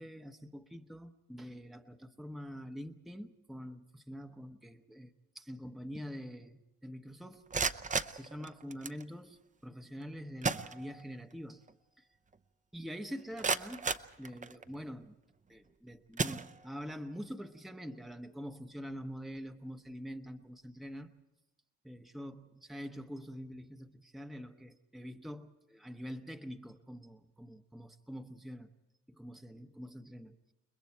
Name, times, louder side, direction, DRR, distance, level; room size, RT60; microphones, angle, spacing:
voice 1, 0.0-7.5 8.1-11.6 12.0-12.1 12.7-13.9 14.2-15.2 15.5-21.1 21.8-28.7 29.1-30.5, equal, ahead, 0.9 m, -45 dB
sound 1, 7.3-9.0 10.0-10.1 10.4-11.3 11.7-11.8 12.3-12.4 13.0-14.8 15.5-15.7 16.1-17.0, right 4 dB, 25° right, 0.8 m, -36 dB
30.0 x 20.5 x 4.6 m
cardioid pair, 90°, 30 cm